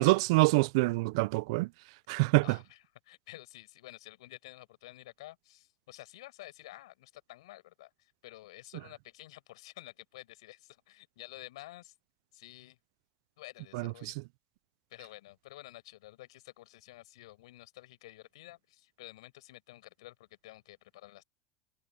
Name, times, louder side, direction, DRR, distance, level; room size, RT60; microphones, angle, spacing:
voice 1, 0.0-1.7 2.1-2.6 13.7-13.9, right 25 dB, 70° right, 0.4 m, -25 dB
voice 2, 2.4-12.0 12.3-12.8 13.4-14.2 14.9-21.2, left 17 dB, 85° left, 6.2 m, -51 dB
supercardioid pair, 120°, 3 cm